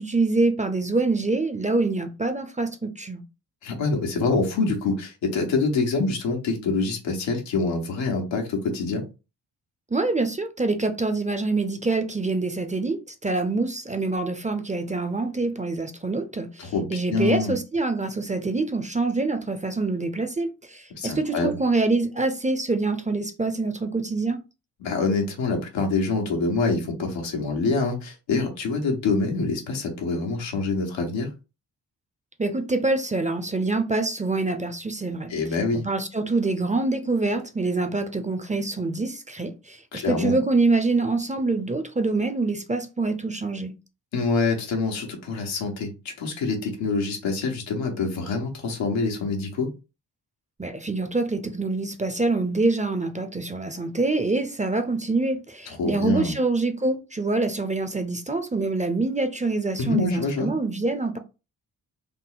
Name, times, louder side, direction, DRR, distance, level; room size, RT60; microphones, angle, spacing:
voice 1, 0.0-3.2 9.9-24.4 32.4-35.3 35.7-43.7 50.6-61.2, right 3 dB, 15° right, 0.6 m, -25 dB
voice 2, 3.6-9.0 16.6-17.5 21.0-21.5 24.8-31.3 35.3-35.8 39.9-40.4 44.1-49.7 55.7-56.3 59.8-60.5, left 3 dB, 85° left, 1.2 m, -26 dB
3.8 x 2.1 x 3.9 m
supercardioid pair, 50°, 44 cm